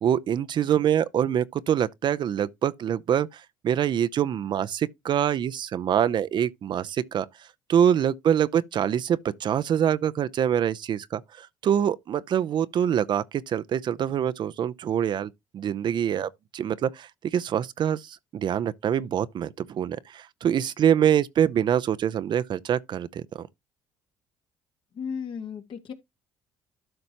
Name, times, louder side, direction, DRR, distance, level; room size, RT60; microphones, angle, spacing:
voice 1, 0.0-7.3 7.7-23.5, right 9 dB, 55° right, 0.7 m, -25 dB
voice 2, 25.0-25.9, left 6 dB, 60° left, 2.0 m, -34 dB
12.5 x 5.2 x 3.0 m
hypercardioid pair, 65°, 10 cm